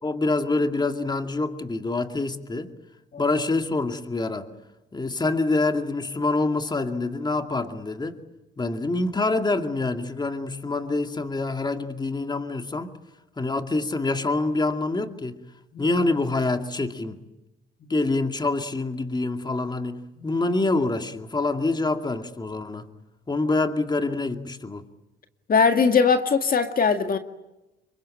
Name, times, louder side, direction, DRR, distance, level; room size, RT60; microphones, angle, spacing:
voice 1, 0.0-2.7 3.2-4.5 4.9-8.2 8.6-12.9 13.4-15.4 15.8-17.2 17.9-22.9 23.3-24.8, left 2 dB, 20° left, 2.3 m, -26 dB
voice 2, 25.5-27.2, left 5 dB, 45° left, 2.0 m, -20 dB
27.5 x 24.0 x 8.9 m
cardioid pair, 90°, 20 cm